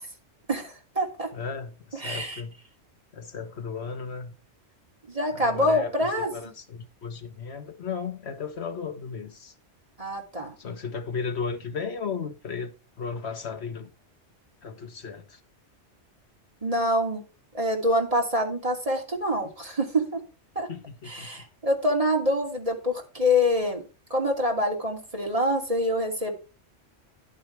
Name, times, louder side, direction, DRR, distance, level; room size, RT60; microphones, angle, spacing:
voice 1, 0.5-1.3 1.9-2.4 5.1-6.3 10.0-10.5 16.6-17.2 17.5-20.2 20.5-20.7 21.1-23.8 24.1-26.3, left 1 dB, 30° right, 3.0 m, -26 dB
voice 2, 1.3-2.5 3.1-4.3 5.3-9.5 10.6-13.9 14.6-15.4 19.4-19.5 20.7-21.5, left 5 dB, 65° left, 1.6 m, -35 dB
11.0 x 9.4 x 3.4 m
omnidirectional pair, 1.2 m